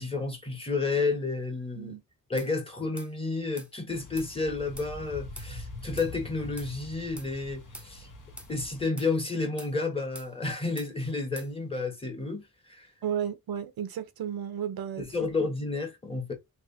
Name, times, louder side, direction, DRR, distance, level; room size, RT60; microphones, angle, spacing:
voice 1, 0.0-2.0 2.3-8.1 8.5-12.4 12.7-12.9 15.0-16.3, left 3 dB, 15° left, 1.2 m, -31 dB
sound 1, 2.4-2.5 3.0-3.1 3.6-3.7 4.2-4.3 4.8-4.9 5.4-5.5 6.0-6.1 6.6-6.7 7.2-7.3 7.7-7.9 8.4-8.5 9.0-9.1 9.6-9.7 10.1-10.3 10.8-10.9 11.4-11.5, right 1 dB, 5° right, 0.7 m, -45 dB
sound 2, 3.9-8.8, left 1 dB, 60° left, 1.3 m, -44 dB
voice 2, 13.0-15.3, right 9 dB, 75° right, 0.7 m, -33 dB
3.4 x 3.0 x 2.6 m
wide cardioid pair, 120°, 36 cm